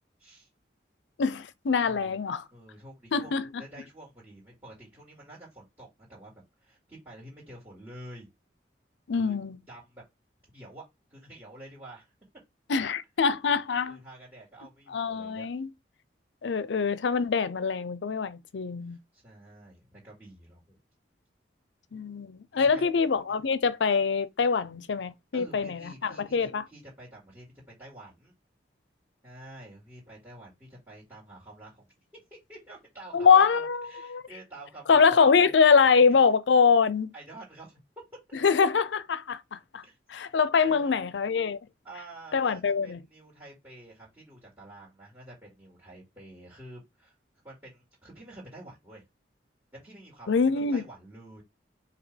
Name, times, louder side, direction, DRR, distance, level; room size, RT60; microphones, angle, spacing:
voice 1, 1.2-2.4 3.1-3.5 9.1-9.6 12.7-14.0 14.9-15.7 16.4-19.0 21.9-26.6 33.1-34.2 34.9-37.1 38.4-39.8 40.1-41.6 42.3-43.0 50.3-50.8, left 5 dB, 85° left, 0.5 m, -24 dB
voice 2, 1.8-2.2 2.5-8.3 9.2-9.4 9.7-10.0 10.5-10.8 11.1-12.1 13.9-15.5 18.8-20.8 22.5-23.0 23.3-23.4 25.3-27.5 27.8-28.3 29.2-31.9 32.5-35.5 36.2-36.3 37.1-37.8 39.8-40.0 40.6-41.0 41.8-47.1 47.4-49.0 49.7-51.4, right 1 dB, 15° right, 2.2 m, -48 dB
5.1 x 2.8 x 3.3 m
head